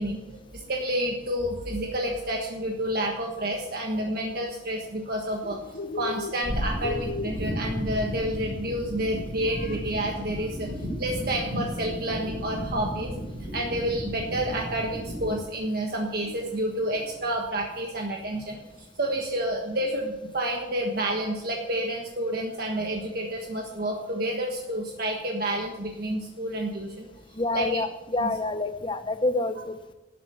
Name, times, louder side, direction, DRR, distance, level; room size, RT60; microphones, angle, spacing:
voice 1, 0.0-10.7 11.0-13.1 13.5-18.6 19.0-27.1 27.5-27.8 28.2-28.3, right 1 dB, 50° right, 0 dB, 1.5 m, -29 dB
Bird, 5.3-17.4, left 3 dB, 45° left, 0.6 m, -42 dB
sound 1, 6.4-15.3, equal, 70° right, 5.4 m, -33 dB
voice 2, 27.3-29.9, left 2 dB, 25° left, 9 dB, 0.9 m, -28 dB
12.5 x 8.4 x 8.0 m, 1.0 s
head